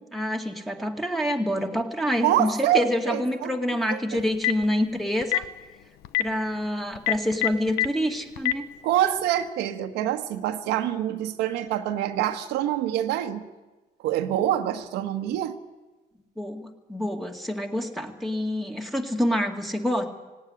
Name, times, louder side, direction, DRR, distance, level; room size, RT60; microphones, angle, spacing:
voice 1, 0.1-5.5 6.2-8.7 16.4-20.1, equal, ahead, 1 dB, 2.2 m, -27 dB
voice 2, 2.2-3.5 3.9-4.2 8.8-13.4 14.0-15.6, right 12 dB, 90° right, 6 dB, 1.4 m, -26 dB
Telephone, 4.2-4.7 5.2-5.5 6.0-6.2 7.0-7.9 8.4-8.5, left 15 dB, 70° left, 0.9 m, -23 dB
18.0 x 17.5 x 9.8 m, 1.2 s
cardioid pair, 110°, 17 cm